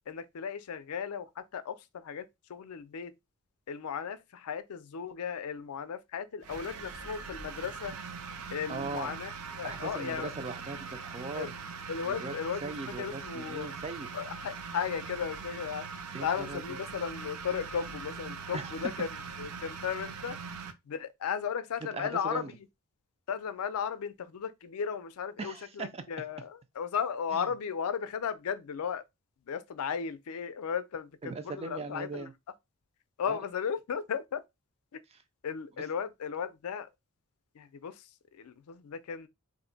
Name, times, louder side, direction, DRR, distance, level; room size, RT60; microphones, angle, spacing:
voice 1, 0.1-3.1 3.7-7.9 8.5-10.3 11.3-11.5 11.9-13.8 14.1-15.9 16.2-19.1 19.4-20.4 20.9-22.5 23.3-29.0 29.5-32.3 33.2-34.4 35.4-36.9 37.6-39.3, left 7 dB, 80° left, 0.4 m, -35 dB
sound 1, 6.4-20.7, right 5 dB, 90° right, 0.5 m, -42 dB
voice 2, 8.7-9.2 9.6-11.5 12.0-12.3 12.6-14.1 16.1-16.8 18.5-18.8 21.9-22.5 25.4-26.0 27.3-27.5 31.2-32.3 33.3-33.4, right 3 dB, 30° right, 0.4 m, -39 dB
2.6 x 2.1 x 3.8 m
head